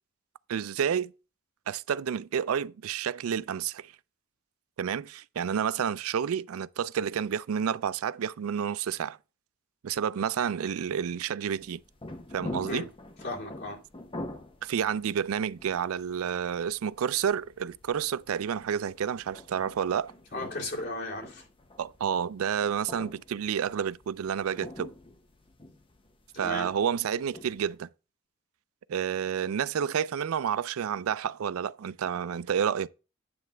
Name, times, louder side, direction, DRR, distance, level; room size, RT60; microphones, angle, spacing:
voice 1, 0.5-1.1 1.7-3.9 4.8-9.2 9.8-11.8 12.3-12.9 14.6-20.1 21.8-24.9 26.4-27.9 28.9-32.9, right 8 dB, 85° right, 0.4 m, -30 dB
sound 1, 11.5-27.8, left 1 dB, 25° left, 0.8 m, -45 dB
voice 2, 13.2-13.8 20.3-21.5 26.3-26.7, left 2 dB, 55° left, 2.4 m, -35 dB
9.5 x 3.3 x 6.7 m
head